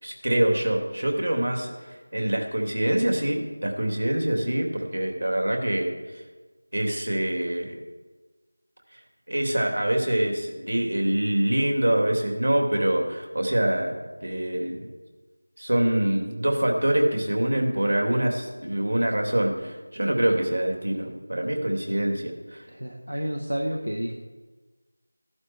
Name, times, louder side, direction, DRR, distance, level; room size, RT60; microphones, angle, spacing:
voice 1, 0.0-6.2 6.7-7.8 8.9-9.0 9.3-13.9 14.2-14.8 15.6-22.6, right 1 dB, 70° right, 2 dB, 3.3 m, -25 dB
voice 2, 22.7-24.1, equal, 85° right, 2 dB, 1.7 m, -30 dB
15.5 x 11.5 x 4.7 m, 1.2 s
figure-of-eight pair, 170°, 0 cm